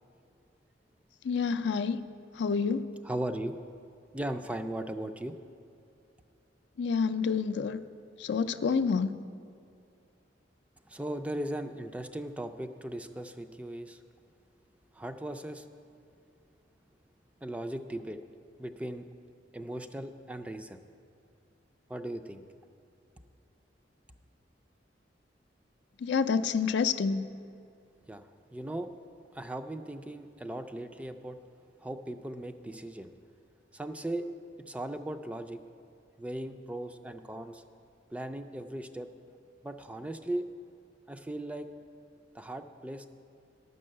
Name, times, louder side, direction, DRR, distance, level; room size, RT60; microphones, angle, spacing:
voice 1, 1.2-2.1 2.4-2.9 6.8-7.8 8.2-9.2 26.0-27.3, left 5 dB, 65° left, 10 dB, 0.4 m, -28 dB
voice 2, 3.0-3.6 4.1-5.4 10.9-14.0 14.9-15.7 17.4-18.2 18.6-19.1 19.5-20.8 21.9-22.4 28.1-28.9 29.3-31.4 31.8-33.1 33.7-34.3 34.6-35.6 36.2-37.6 38.1-39.1 39.6-40.5 41.1-41.7 42.3-43.1, right 1 dB, 5° right, 7 dB, 0.3 m, -38 dB
11.5 x 5.5 x 7.5 m, 2.4 s
head